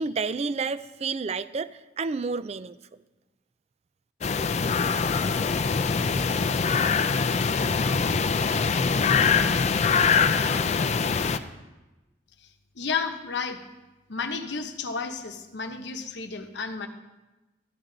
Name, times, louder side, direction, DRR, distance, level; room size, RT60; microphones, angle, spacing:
voice 1, 0.0-2.8, right 4 dB, 35° right, 15 dB, 0.3 m, -30 dB
sound 1, 4.2-11.4, left 5 dB, 35° left, 0.4 m, -23 dB
voice 2, 12.7-13.6 14.1-16.9, left 5 dB, 70° left, 7 dB, 0.9 m, -32 dB
13.5 x 10.5 x 3.9 m, 1.1 s
head